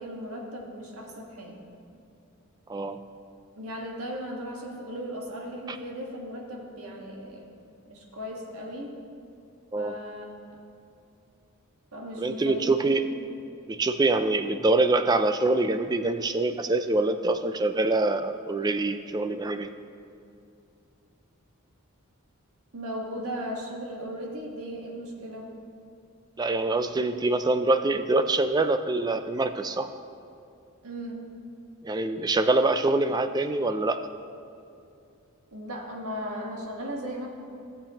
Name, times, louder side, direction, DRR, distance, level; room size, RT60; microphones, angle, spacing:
voice 1, 0.0-1.6 3.6-7.5 7.9-9.0 9.7-10.6 11.9-12.9 22.7-25.5 30.8-31.3 35.5-37.3, equal, 80° right, 0 dB, 1.5 m, -37 dB
voice 2, 12.2-13.0 13.7-19.7 26.4-29.9 31.8-34.0, right 2 dB, 20° right, 9 dB, 0.3 m, -25 dB
16.5 x 6.9 x 2.9 m, 2.6 s
head